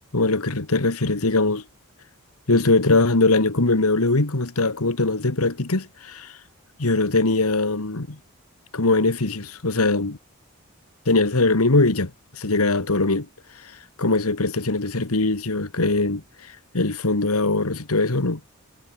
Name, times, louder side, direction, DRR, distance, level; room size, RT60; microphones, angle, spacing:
voice 1, 0.1-1.6 2.5-6.3 6.8-8.2 8.7-10.2 11.1-13.3 14.0-16.2 16.7-18.4, left 2 dB, 80° left, 1.8 m, -21 dB
head